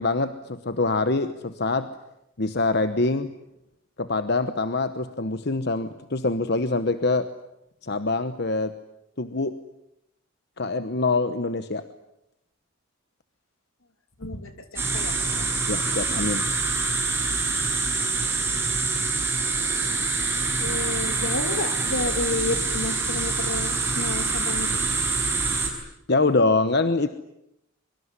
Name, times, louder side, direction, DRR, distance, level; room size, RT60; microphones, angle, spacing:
voice 1, 0.0-1.9 2.4-3.3 4.0-7.3 7.8-8.7 9.2-9.6 10.6-11.8 15.7-16.5 26.1-27.1, left 3 dB, 50° left, 11 dB, 1.0 m, -24 dB
voice 2, 14.2-15.5 20.6-24.9, left 2 dB, 75° left, 8 dB, 3.2 m, -31 dB
sound 1, 14.8-25.7, right 4 dB, 10° right, 6.0 m, -25 dB
24.5 x 24.0 x 9.7 m, 0.83 s
head